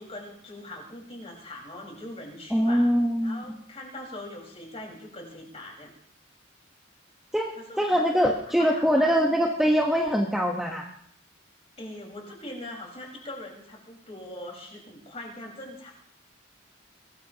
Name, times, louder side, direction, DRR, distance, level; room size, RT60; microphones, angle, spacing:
voice 1, 0.0-2.9 3.2-5.9 7.6-9.2 11.8-15.9, left 1 dB, 30° left, 0 dB, 4.9 m, -41 dB
voice 2, 2.5-3.4 7.3-10.9, equal, ahead, -1 dB, 1.2 m, -23 dB
23.0 x 19.0 x 3.0 m, 0.64 s
head